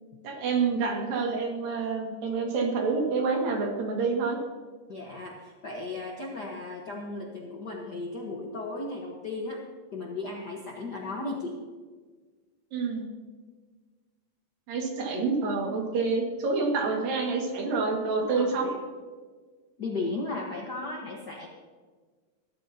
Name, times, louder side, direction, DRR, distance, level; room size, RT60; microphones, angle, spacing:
voice 1, 0.2-4.4 12.7-13.1 14.7-18.8, right 4 dB, 85° right, 0 dB, 3.7 m, -28 dB
voice 2, 4.9-9.6 9.9-11.6 18.1-18.8 19.8-21.5, left 2 dB, 75° left, -1 dB, 0.9 m, -35 dB
20.0 x 12.5 x 2.8 m, 1.4 s
omnidirectional pair, 3.9 m